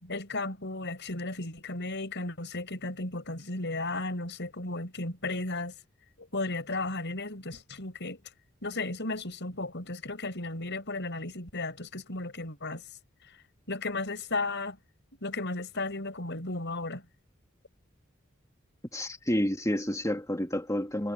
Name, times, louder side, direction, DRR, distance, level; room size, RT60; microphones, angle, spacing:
voice 1, 0.0-5.7 6.2-8.2 8.6-12.8 13.7-14.8 15.2-17.0, left 2 dB, 60° left, 6.5 m, -34 dB
voice 2, 18.9-21.1, left 1 dB, 15° left, 2.7 m, -29 dB
head